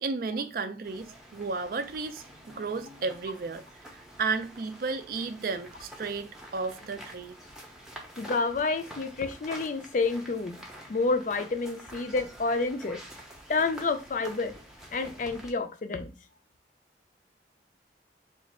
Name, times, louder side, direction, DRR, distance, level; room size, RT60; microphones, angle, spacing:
voice 1, 0.0-3.6 3.9-7.3, right 4 dB, 55° right, 0.4 m, -33 dB
sound 1, 0.8-15.5, equal, 5° right, 0.6 m, -48 dB
voice 2, 8.2-10.6 10.9-13.0 13.5-14.5 14.9-16.1, left 3 dB, 45° left, 0.4 m, -29 dB
3.1 x 2.4 x 4.2 m
head